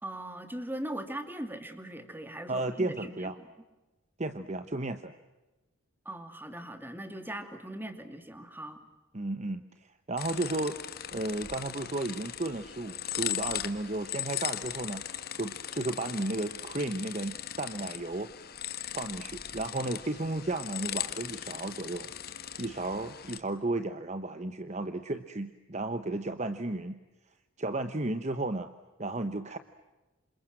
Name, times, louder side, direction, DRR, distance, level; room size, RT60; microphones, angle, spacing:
voice 1, 0.0-3.3 6.0-8.8, right 1 dB, 10° right, 8 dB, 2.6 m, -40 dB
voice 2, 2.5-3.4 4.2-5.1 9.1-10.8 11.1-15.0 15.4-18.3 18.9-22.1 22.6-27.0 27.6-28.7 29.0-29.6, right 2 dB, 35° right, 10 dB, 1.0 m, -33 dB
sound 1, 10.2-23.4, left 11 dB, 45° left, 1.7 m, -38 dB
28.0 x 27.0 x 7.7 m, 1.1 s
head